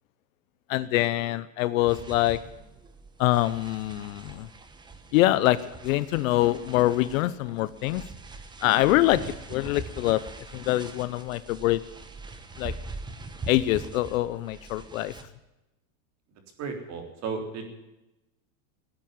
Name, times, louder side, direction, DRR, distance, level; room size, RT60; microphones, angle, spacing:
voice 1, 0.7-2.4 3.2-4.5 5.1-8.0 8.6-9.2 9.5-10.2 10.5-11.8 12.6-12.7 13.5-15.1, left 16 dB, 55° left, 15 dB, 0.8 m, -24 dB
sound 1, 1.9-15.2, right 3 dB, 10° right, 1.0 m, -43 dB
voice 2, 16.6-17.6, right 5 dB, 30° right, 4 dB, 3.6 m, -34 dB
17.5 x 8.8 x 9.1 m, 0.97 s
supercardioid pair, 150°, 49 cm